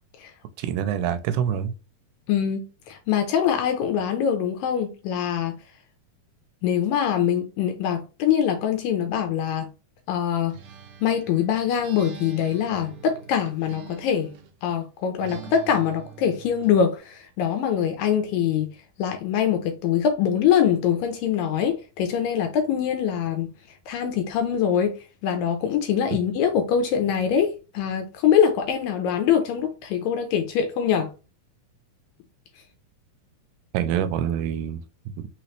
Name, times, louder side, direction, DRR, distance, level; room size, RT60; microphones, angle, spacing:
voice 1, 0.6-1.7 33.7-35.3, right 9 dB, 90° right, 2.5 m, -26 dB
voice 2, 2.3-5.6 6.6-9.7 10.1-10.6 11.0-14.3 14.6-18.7 19.0-23.5 23.9-25.0 25.2-31.1, left 8 dB, 80° left, 2.1 m, -23 dB
Acoustic guitar, 10.5-14.6 15.2-16.8, right 8 dB, 70° right, 2.0 m, -44 dB
5.6 x 2.9 x 3.1 m
omnidirectional pair, 4.4 m